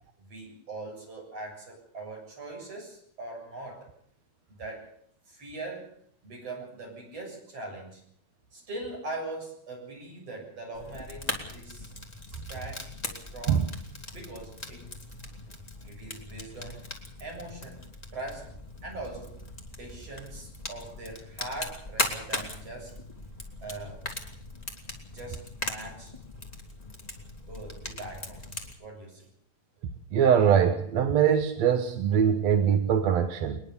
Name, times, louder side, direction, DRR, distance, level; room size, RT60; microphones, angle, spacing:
voice 1, 0.2-3.9 4.5-4.9 5.3-5.9 6.2-8.0 8.5-11.9 12.3-13.7 14.1-14.9 15.8-16.9 17.2-17.8 18.1-18.5 18.8-19.4 19.7-22.9 23.6-24.0 25.1-26.1 27.4-29.3, right 2 dB, 40° right, 0 dB, 8.4 m, -41 dB
Fire, 10.7-28.7, left 2 dB, 10° left, 2.4 m, -39 dB
voice 2, 30.1-33.6, right 8 dB, 60° right, 7 dB, 2.1 m, -22 dB
21.5 x 21.0 x 7.0 m, 0.63 s
omnidirectional pair, 4.1 m